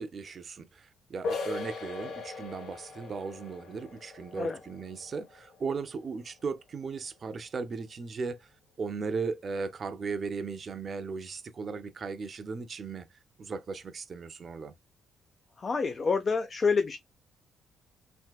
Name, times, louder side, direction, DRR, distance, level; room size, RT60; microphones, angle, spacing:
voice 1, 0.0-8.4 8.8-13.1 13.4-14.7, right 4 dB, 45° right, 0.5 m, -37 dB
sound 1, 1.2-6.7, left 4 dB, 70° left, 1.0 m, -40 dB
voice 2, 15.6-17.0, left 4 dB, 40° left, 0.4 m, -27 dB
3.4 x 2.7 x 2.3 m
cardioid pair, 90°, 0 cm